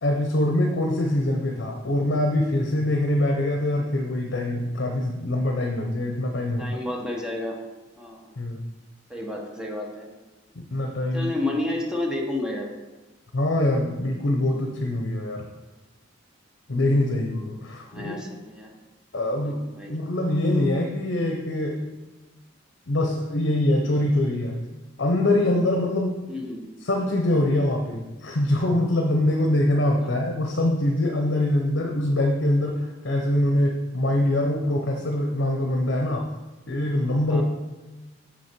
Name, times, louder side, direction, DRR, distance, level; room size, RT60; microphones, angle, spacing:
voice 1, 0.0-6.8 8.4-8.6 10.6-11.3 13.3-15.5 16.7-18.2 19.1-19.6 19.9-21.8 22.9-24.6 25.0-26.2 26.8-36.3 36.7-37.4, left 1 dB, 65° left, 2 dB, 0.8 m, -24 dB
voice 2, 6.6-7.6 8.0-8.2 9.1-10.1 11.1-12.7 17.9-18.7 19.4-19.9 26.3-26.6 30.0-30.1 37.3-37.4, left 1 dB, 5° right, -1 dB, 1.1 m, -31 dB
6.5 x 6.1 x 4.5 m, 1.1 s
head